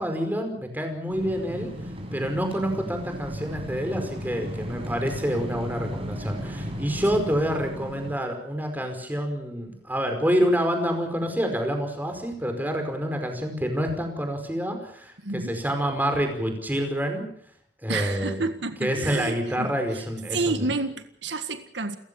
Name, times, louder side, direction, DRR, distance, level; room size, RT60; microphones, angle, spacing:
voice 1, 0.0-1.7 2.1-17.3 17.8-18.4 18.8-20.7, equal, 10° right, 5 dB, 5.1 m, -27 dB
sound 1, 1.1-8.1, equal, 30° right, 6.9 m, -35 dB
voice 2, 15.2-15.6 17.9-20.0 20.3-22.0, right 3 dB, 80° right, 9 dB, 1.8 m, -30 dB
29.5 x 15.5 x 7.1 m, 0.66 s
head